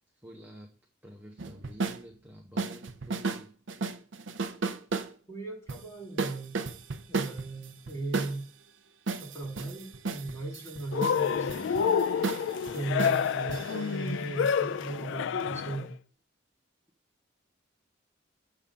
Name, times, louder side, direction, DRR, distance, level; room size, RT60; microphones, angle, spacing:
voice 1, 0.1-0.7 1.0-3.6, equal, 10° right, 0 dB, 1.0 m, -50 dB
sound 1, 1.4-2.0 2.6-3.4 3.7-5.1 5.7-5.8 6.2-8.4 9.1-14.7, right 4 dB, 70° right, 0.6 m, -34 dB
voice 2, 5.3-6.6 7.1-8.5 9.2-12.1 12.7-15.9, right 2 dB, 15° left, -4 dB, 2.7 m, -37 dB
Cheering, 10.9-15.9, left 7 dB, 65° left, 0.3 m, -29 dB
8.3 x 3.8 x 6.9 m, 0.40 s
head